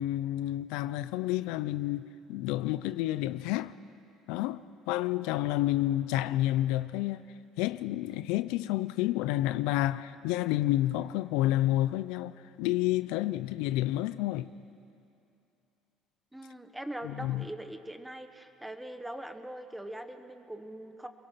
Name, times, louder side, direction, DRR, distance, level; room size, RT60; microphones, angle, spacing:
voice 1, 0.0-3.8 4.3-7.2 7.6-14.5 17.0-17.5, left 15 dB, 85° left, 0.6 m, -30 dB
voice 2, 16.3-21.1, right 1 dB, 5° right, 1.2 m, -42 dB
28.0 x 22.0 x 5.8 m
cardioid pair, 135°, 0 cm